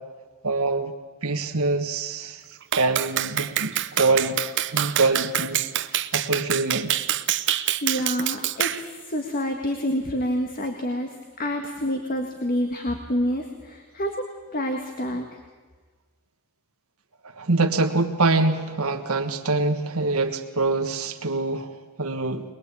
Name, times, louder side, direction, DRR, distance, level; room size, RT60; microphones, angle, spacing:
voice 1, 0.4-0.9 1.2-2.4 2.7-4.4 4.7-5.6 5.9-7.0 17.3-22.4, right 3 dB, 85° right, 5 dB, 1.5 m, -24 dB
Clapping, 2.7-8.8, right 12 dB, 60° right, 0.8 m, -26 dB
voice 2, 7.8-14.2 14.5-15.3, equal, 40° left, 4 dB, 1.8 m, -28 dB
22.0 x 21.5 x 8.4 m, 1.4 s
head